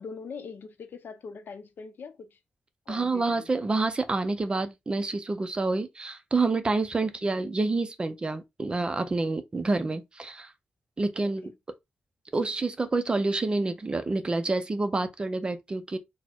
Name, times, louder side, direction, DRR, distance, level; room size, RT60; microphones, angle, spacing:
voice 1, 0.0-2.4 2.9-3.5 7.0-7.3 8.7-8.8 11.2-11.3, left 5 dB, 55° left, 0.6 m, -43 dB
voice 2, 2.9-10.5 11.0-11.5 12.3-16.0, right 3 dB, 25° right, 0.4 m, -28 dB
4.2 x 2.1 x 4.3 m
wide cardioid pair, 170°, 4 cm